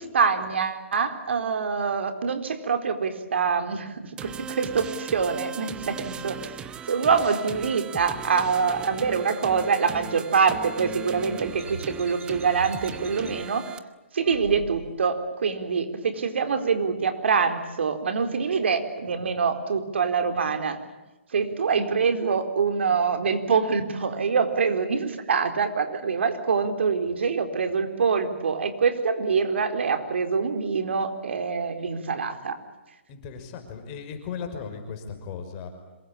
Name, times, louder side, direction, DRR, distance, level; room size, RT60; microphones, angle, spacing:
voice 1, 0.0-13.7 14.1-20.8 21.3-32.6, right 5 dB, 65° right, 8 dB, 4.2 m, -25 dB
sound 1, 4.2-13.8, right 7 dB, 15° right, 1.0 m, -38 dB
sound 2, 11.6-13.3 14.2-15.1, right 4 dB, 85° right, 4.0 m, -40 dB
voice 2, 33.1-35.7, left 6 dB, 30° left, 6 dB, 5.6 m, -36 dB
26.5 x 24.0 x 8.8 m, 1.1 s
hypercardioid pair, 145°, 7 cm